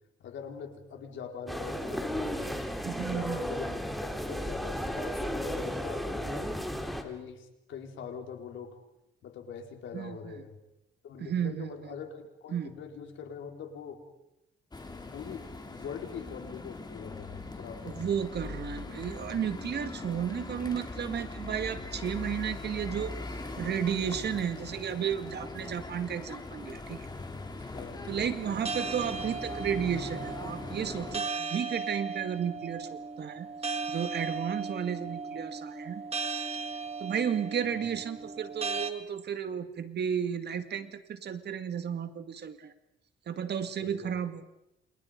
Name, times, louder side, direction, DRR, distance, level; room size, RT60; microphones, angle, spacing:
voice 1, 0.2-2.6 3.0-6.5 7.0-8.7 9.2-10.6 11.0-14.0 15.1-18.1 27.7-28.2 37.6-37.9 43.8-44.2, left 6 dB, 75° left, 3 dB, 4.4 m, -43 dB
sound 1, 1.5-7.0, equal, ahead, 3.7 m, -34 dB
voice 2, 2.8-3.4 9.9-10.2 11.2-11.7 12.5-12.7 17.8-23.2 23.6-27.1 28.1-33.5 33.9-36.0 37.0-42.7 43.3-44.4, right 8 dB, 55° right, 10 dB, 2.0 m, -33 dB
sound 2, 14.7-31.2, left 3 dB, 20° left, 3.2 m, -41 dB
sound 3, 28.7-38.9, right 4 dB, 30° right, 2.1 m, -37 dB
29.0 x 28.0 x 5.2 m, 0.89 s
cardioid pair, 90°, 20 cm